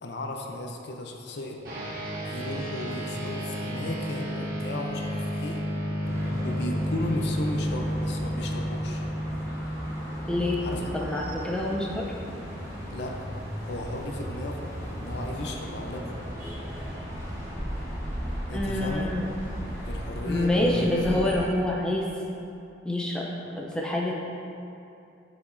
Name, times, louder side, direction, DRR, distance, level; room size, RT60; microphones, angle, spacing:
voice 1, 0.0-1.7 2.2-5.6 6.4-9.0 10.6-10.9 12.9-13.3 13.6-16.2 18.5-19.1 19.9-20.8 21.1-21.4, left 1 dB, 60° left, 2 dB, 0.5 m, -35 dB
sound 1, 1.6-11.4, equal, 50° right, 1.4 m, -32 dB
sound 2, 6.0-21.5, equal, 20° right, 1.4 m, -36 dB
voice 2, 10.3-12.1 18.5-19.3 20.2-22.1 22.8-24.1, left 1 dB, 5° left, -3 dB, 0.5 m, -27 dB
8.2 x 5.0 x 2.6 m, 2.7 s
head